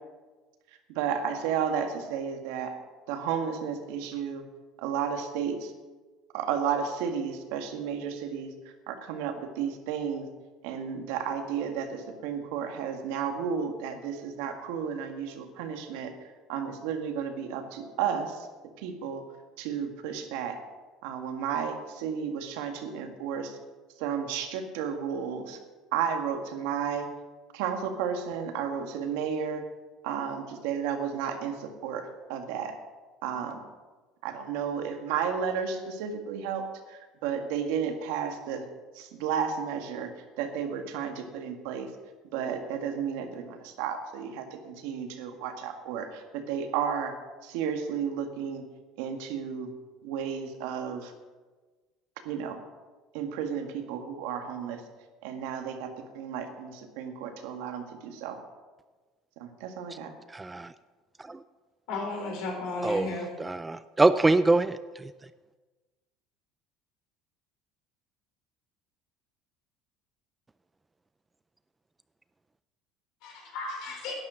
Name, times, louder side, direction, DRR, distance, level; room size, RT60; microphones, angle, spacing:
voice 1, 0.9-2.7 3.1-4.4 4.8-5.7 6.3-8.5 8.9-10.3 10.6-16.1 16.5-18.5 18.8-19.2 19.6-20.6 21.0-23.5 24.0-25.6 25.9-27.1 27.5-29.6 30.0-32.8 33.2-33.6 34.2-38.6 38.9-40.1 40.4-41.9 42.3-47.1 47.4-48.6 49.0-49.7 50.0-51.1 52.2-52.6 53.1-54.8 55.2-58.4 59.4-60.1, right 7 dB, 85° right, 5 dB, 1.8 m, -32 dB
voice 2, 60.3-60.7 61.3-61.4 62.8-63.1 63.4-65.0, right 2 dB, 10° right, 13 dB, 0.3 m, -24 dB
voice 3, 61.9-63.3 73.2-74.1, left 2 dB, 65° left, 1 dB, 4.6 m, -34 dB
11.5 x 10.5 x 6.3 m, 1.3 s
cardioid pair, 150°, 0 cm